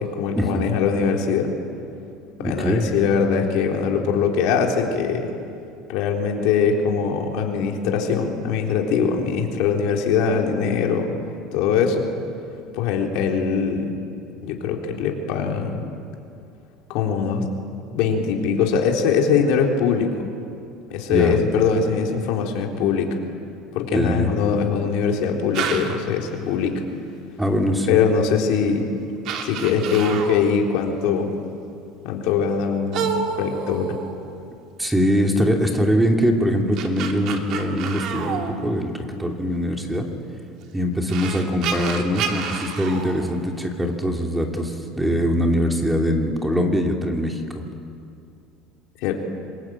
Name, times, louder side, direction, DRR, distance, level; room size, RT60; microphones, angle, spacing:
voice 1, 0.0-1.5 2.4-5.4 5.9-11.1 11.5-12.1 12.7-14.0 14.4-15.8 16.9-17.4 17.9-20.1 20.9-23.2 23.7-26.8 27.9-28.9 29.4-31.3 32.0-33.1 33.4-34.0 49.0-49.1, left 6 dB, 70° left, 1 dB, 3.7 m, -22 dB
voice 2, 2.4-2.9 21.1-21.4 23.9-24.3 27.4-28.0 34.8-40.1 40.7-47.6, equal, 5° right, 2 dB, 2.9 m, -22 dB
sound 1, 25.5-26.1 28.2-28.3 28.9-29.0 29.2-30.6 32.9-34.5 36.5-39.2 40.6-40.7 41.1-43.9, right 6 dB, 55° right, 2.7 m, -29 dB
26.5 x 22.0 x 9.0 m, 2.5 s
supercardioid pair, 130°, 0 cm